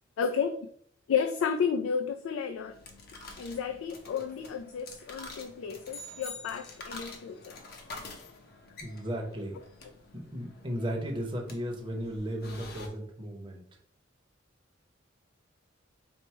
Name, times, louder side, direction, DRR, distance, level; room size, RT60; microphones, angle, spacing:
voice 1, 0.2-0.6 1.1-2.8 3.4-7.6, left 6 dB, 85° left, 7 dB, 0.3 m, -32 dB
sound 1, 2.6-12.9, left 3 dB, 50° left, 0.7 m, -48 dB
sound 2, 5.9-7.2, left 2 dB, 70° left, 1.7 m, -45 dB
voice 2, 8.8-9.6 10.1-13.6, equal, 25° right, 0 dB, 0.7 m, -35 dB
4.3 x 2.1 x 4.3 m, 0.62 s
head